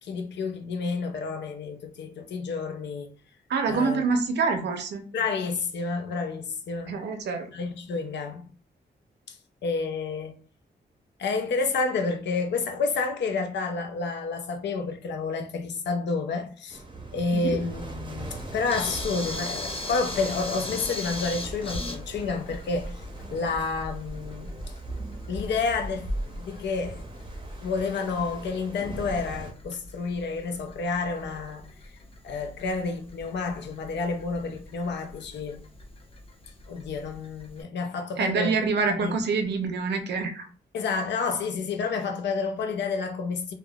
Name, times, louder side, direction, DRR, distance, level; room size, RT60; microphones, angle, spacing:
voice 1, 0.0-3.1 3.7-4.0 5.1-7.0 7.5-8.5 9.3-9.4 9.6-10.4 11.2-16.8 17.1-22.9 23.3-24.5 25.3-27.0 27.6-31.7 32.2-35.6 36.7-38.6 39.0-39.2 40.7-43.5, left 4 dB, 85° left, 0.6 m, -30 dB
voice 2, 3.5-5.0 6.9-7.5 17.3-17.6 38.2-40.5, right 4 dB, 75° right, 0.6 m, -26 dB
sound 1, 16.7-29.5, right 1 dB, 30° right, 0.6 m, -39 dB
Camera, 18.3-37.6, left 2 dB, 30° left, 0.8 m, -41 dB
3.4 x 2.2 x 2.3 m
wide cardioid pair, 115°, 18 cm